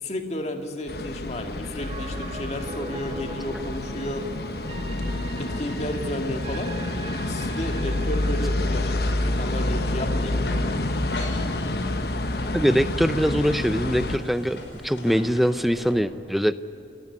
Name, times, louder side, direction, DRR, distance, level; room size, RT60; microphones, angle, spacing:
voice 1, 0.0-4.3 5.4-6.7 7.3-10.6, left 1 dB, 35° left, 4 dB, 2.1 m, -32 dB
sound 1, 0.9-14.2, left 1 dB, 60° left, 1.1 m, -28 dB
sound 2, 1.8-11.8 12.1-12.2, right 2 dB, 30° right, 1.8 m, -43 dB
sound 3, 8.6-15.9, left 1 dB, 85° left, 5.3 m, -40 dB
voice 2, 12.5-14.6 14.8-16.5, equal, ahead, 12 dB, 0.6 m, -22 dB
29.0 x 14.5 x 9.8 m, 2.7 s
head